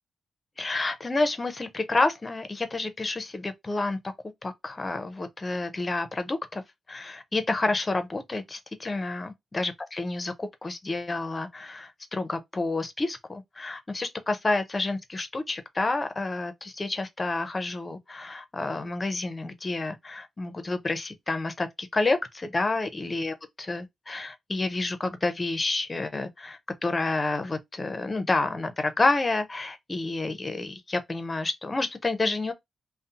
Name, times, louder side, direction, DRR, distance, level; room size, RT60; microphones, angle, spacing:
voice 1, 0.6-4.1 4.4-6.6 6.9-32.5, left 3 dB, 25° left, 0.5 m, -29 dB
2.6 x 2.0 x 2.7 m
wide cardioid pair, 125°, 0 cm